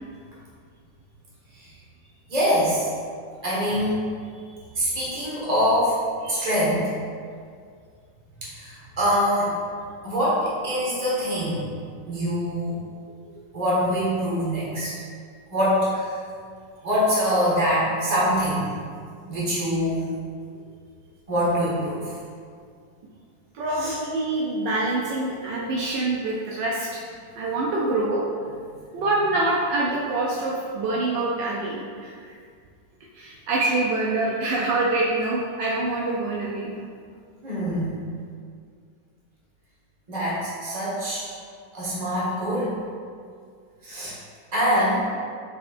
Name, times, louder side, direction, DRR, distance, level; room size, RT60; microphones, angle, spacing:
voice 1, 2.3-2.9 3.4-4.0 4.7-6.0 6.3-6.9 8.4-9.5 10.0-11.6 12.1-12.8 13.5-14.9 15.5-16.2 16.8-18.7 19.3-20.0 21.3-22.2 23.7-23.9 37.4-38.0 40.1-41.3 41.7-42.7 43.8-44.1 44.5-45.1, equal, 25° right, -8 dB, 1.3 m, -24 dB
voice 2, 23.5-27.0 27.4-28.2 28.9-32.3 33.1-36.7, right 2 dB, 75° right, -4 dB, 1.2 m, -25 dB
6.0 x 3.5 x 2.5 m, 2.1 s
omnidirectional pair, 2.0 m